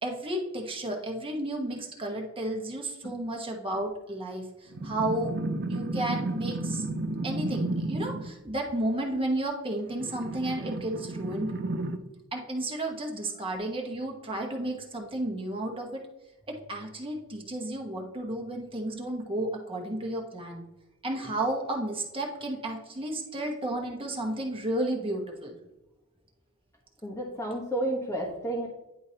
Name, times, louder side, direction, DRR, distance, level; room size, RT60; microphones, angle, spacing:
voice 1, 0.0-5.3 5.7-6.8 7.2-11.5 12.3-16.0 16.5-20.6 21.0-25.6, right 1 dB, 25° right, 1 dB, 1.2 m, -32 dB
sound 1, 4.7-8.3 9.9-12.0, right 2 dB, 50° right, 0.6 m, -32 dB
voice 2, 27.0-28.7, right 1 dB, 15° left, -2 dB, 1.1 m, -31 dB
10.0 x 4.7 x 2.9 m, 0.95 s
head